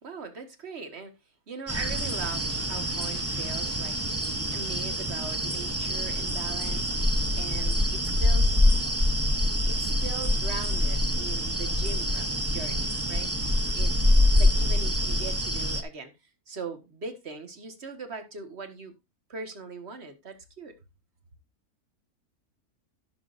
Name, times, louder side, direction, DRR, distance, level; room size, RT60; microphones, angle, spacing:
voice 1, 0.0-1.1 1.5-4.0 4.5-8.6 9.7-13.3 13.7-13.9 14.4-16.1 16.5-18.9 19.3-20.8, right 4 dB, 45° right, 1.8 m, -40 dB
sound 1, 1.7-15.8, left 1 dB, 15° right, 0.5 m, -25 dB
17.0 x 6.4 x 2.6 m
omnidirectional pair, 1.6 m